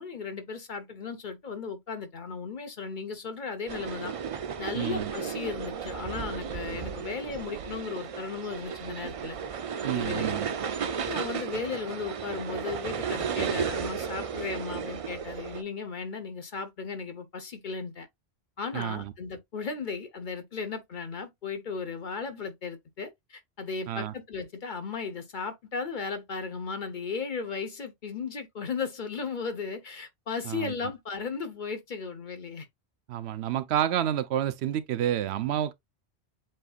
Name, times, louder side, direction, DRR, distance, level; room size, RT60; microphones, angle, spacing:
voice 1, 0.0-4.1 4.6-9.4 9.9-10.4 11.1-18.1 18.6-32.7, left 5 dB, 50° left, 1.0 m, -36 dB
sound 1, 3.7-15.6, right 7 dB, 55° right, 0.4 m, -34 dB
voice 2, 4.7-5.1 9.8-10.5 18.7-19.1 23.9-24.1 30.4-30.7 33.1-35.7, right 11 dB, 80° right, 0.8 m, -29 dB
7.7 x 2.6 x 2.3 m
omnidirectional pair, 1.1 m